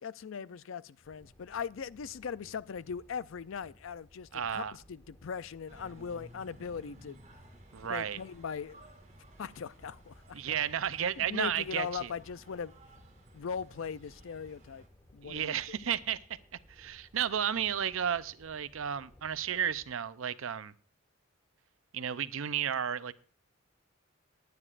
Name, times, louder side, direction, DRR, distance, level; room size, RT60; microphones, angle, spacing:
voice 1, 0.0-7.2 7.9-8.8 9.4-10.6 11.2-12.7 13.3-14.8 15.1-15.8, left 6 dB, 70° left, 0.4 m, -40 dB
sound 1, 1.0-19.9, equal, 10° left, 1.6 m, -60 dB
voice 2, 4.3-4.8 7.7-8.2 10.3-12.1 15.2-16.2 16.7-20.7 21.9-23.1, right 8 dB, 75° right, 0.6 m, -33 dB
sound 2, 5.7-14.9, right 1 dB, 35° right, 2.7 m, -57 dB
20.5 x 9.4 x 2.5 m
head